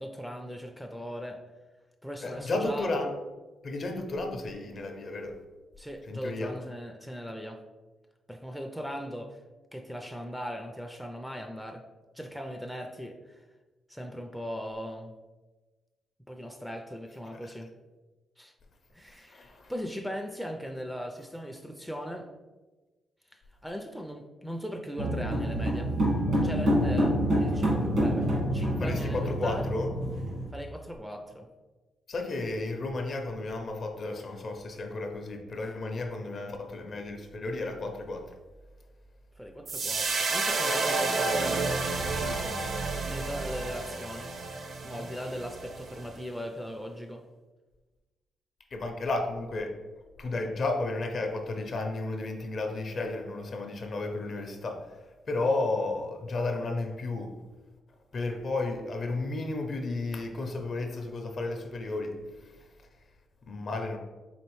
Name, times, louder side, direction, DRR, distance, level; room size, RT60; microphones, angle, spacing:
voice 1, 0.0-1.4 2.0-3.1 5.8-7.6 8.3-9.4 9.7-11.8 12.1-13.4 13.9-15.1 16.3-17.7 18.4-18.5 18.9-22.3 23.3-25.9 26.4-29.7 30.5-31.5 39.4-44.3 44.8-47.2, equal, ahead, 3 dB, 0.3 m, -39 dB
voice 2, 2.2-3.1 3.6-5.4 6.1-6.5 19.3-19.7 28.8-29.9 32.1-38.3 48.7-49.7 50.2-54.9 55.3-57.3 58.1-62.2 62.4-62.5 63.5-64.0, left 2 dB, 50° left, 5 dB, 0.5 m, -33 dB
sound 1, 25.0-30.4, equal, 80° right, 1.3 m, -27 dB
sound 2, 39.7-46.1, right 3 dB, 55° right, 0.5 m, -30 dB
4.2 x 3.2 x 3.0 m, 1.2 s
cardioid pair, 110°, 0 cm